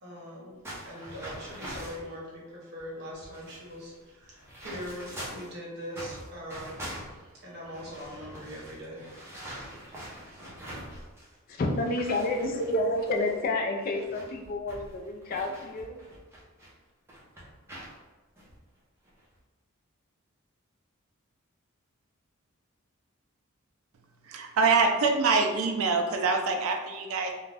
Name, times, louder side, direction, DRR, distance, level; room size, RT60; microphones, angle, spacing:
voice 1, 0.0-6.9 7.4-9.1, equal, 50° right, -4 dB, 0.8 m, -42 dB
sound 1, 0.6-2.1 2.8-2.9 3.1-5.5 5.9-11.3 11.6-16.7 17.1-17.9 18.4-18.5 19.1-19.3, right 1 dB, 10° right, 0.6 m, -44 dB
voice 2, 11.5-16.0, left 2 dB, 40° left, 2 dB, 0.3 m, -29 dB
voice 3, 24.3-27.3, right 4 dB, 70° right, 3 dB, 0.4 m, -25 dB
2.5 x 2.2 x 3.3 m, 1.3 s
head